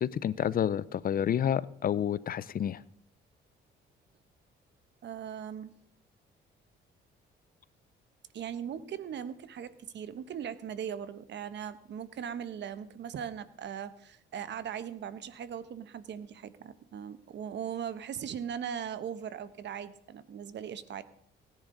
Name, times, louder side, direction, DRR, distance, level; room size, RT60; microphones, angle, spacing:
voice 1, 0.0-2.8, left 9 dB, 50° left, 0.5 m, -29 dB
voice 2, 5.0-5.8 8.3-21.0, right 8 dB, 65° right, 1.0 m, -39 dB
18.0 x 10.5 x 3.9 m
cardioid pair, 90°, 20 cm